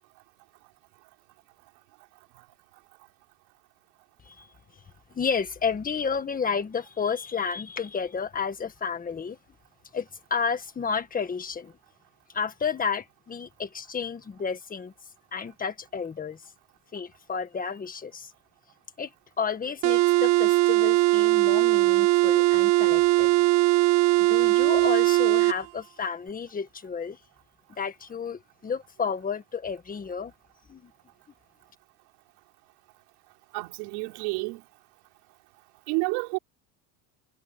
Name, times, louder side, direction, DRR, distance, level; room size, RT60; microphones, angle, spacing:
voice 1, 5.1-9.4 9.9-11.7 12.3-14.9 15.3-16.4 16.9-18.3 19.0-19.1 19.4-23.3 24.3-27.2 27.8-30.3 30.7-30.9, left 6 dB, 20° left, 1.7 m, -31 dB
sound 1, 19.8-25.6, right 19 dB, 40° right, 0.4 m, -20 dB
voice 2, 33.5-34.6 35.9-36.4, right 29 dB, 80° right, 4.2 m, -29 dB
cardioid pair, 155°, 46 cm